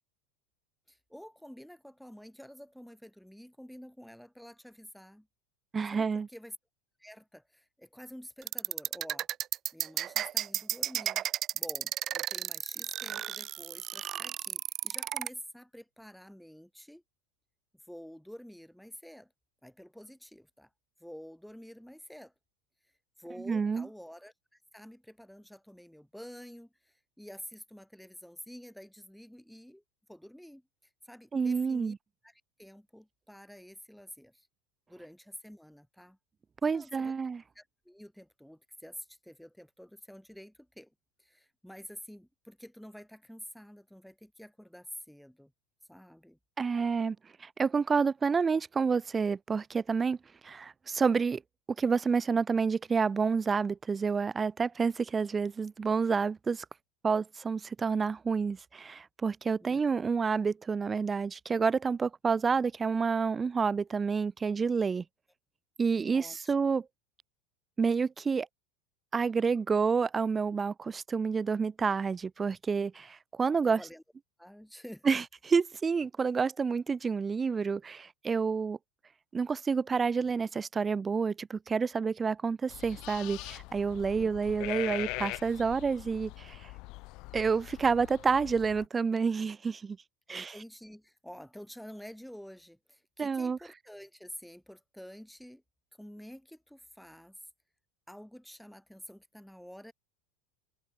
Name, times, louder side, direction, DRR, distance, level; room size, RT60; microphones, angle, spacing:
voice 1, 0.9-5.3 5.9-6.5 7.0-9.3 9.7-17.0 17.9-19.3 19.6-20.7 21.0-22.3 23.2-29.8 30.1-30.6 31.0-31.9 32.2-34.5 34.9-36.2 36.7-37.1 37.5-40.9 41.2-45.5 45.9-46.4 59.6-59.8 66.1-66.5 73.6-74.0 74.4-75.2 84.1-84.3 90.3-95.6 95.9-97.4 98.1-99.9, equal, ahead, 6.4 m, -49 dB
voice 2, 5.7-6.3 23.4-23.9 31.3-32.0 36.6-37.4 46.6-50.2 50.4-51.4 51.8-56.7 57.0-65.0 65.8-66.9 67.8-68.5 69.1-73.8 75.0-78.8 79.3-86.7 87.3-90.0 90.3-90.5 93.2-93.6, right 5 dB, 15° right, 0.5 m, -29 dB
sound 1, 8.4-15.3, right 11 dB, 35° right, 0.9 m, -33 dB
sound 2, 82.7-88.9, left 23 dB, 50° left, 1.3 m, -42 dB
supercardioid pair, 140°, 0 cm